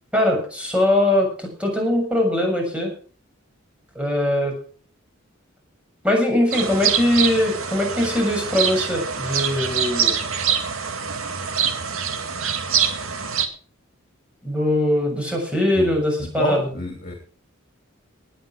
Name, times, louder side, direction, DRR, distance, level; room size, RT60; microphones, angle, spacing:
voice 1, 0.1-2.9 4.0-4.6 6.0-10.2 14.4-16.6, left 1 dB, 5° right, 0 dB, 6.8 m, -21 dB
sound 1, 6.5-13.5, right 7 dB, 80° right, 2.2 m, -24 dB
voice 2, 16.2-17.1, left 1 dB, 40° left, 3 dB, 2.9 m, -27 dB
19.0 x 9.4 x 4.8 m, 0.41 s
head